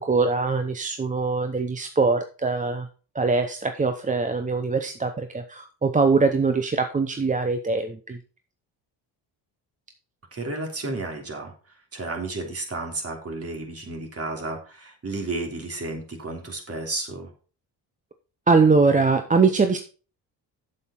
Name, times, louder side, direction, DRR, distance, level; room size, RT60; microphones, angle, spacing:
voice 1, 0.0-2.9 3.1-8.2 18.5-19.8, right 4 dB, 20° right, 7 dB, 0.7 m, -22 dB
voice 2, 10.3-17.3, right 2 dB, 35° right, 3 dB, 3.1 m, -32 dB
7.8 x 7.7 x 4.3 m, 0.37 s
cardioid pair, 100°, 42 cm